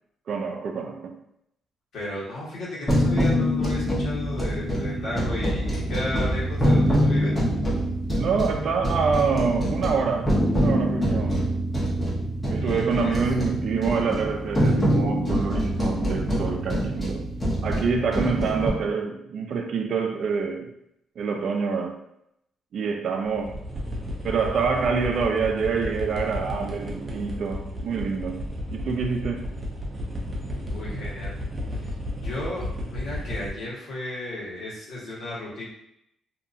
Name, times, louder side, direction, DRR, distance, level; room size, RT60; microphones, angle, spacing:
voice 1, 0.3-1.2 8.2-11.6 12.5-17.3 17.6-20.7 21.2-22.0 22.7-23.6 24.2-28.4 28.7-29.5, right 5 dB, 65° right, 0.4 m, -26 dB
voice 2, 1.9-7.4 12.6-13.2 30.7-31.3 31.8-31.9 32.2-35.6, left 1 dB, 70° left, 1.4 m, -34 dB
sound 1, 2.9-18.7, equal, 20° left, 1.0 m, -24 dB
sound 2, 23.2-33.5, left 1 dB, 25° right, 0.7 m, -33 dB
2.8 x 2.4 x 2.6 m
cardioid pair, 90°, 0 cm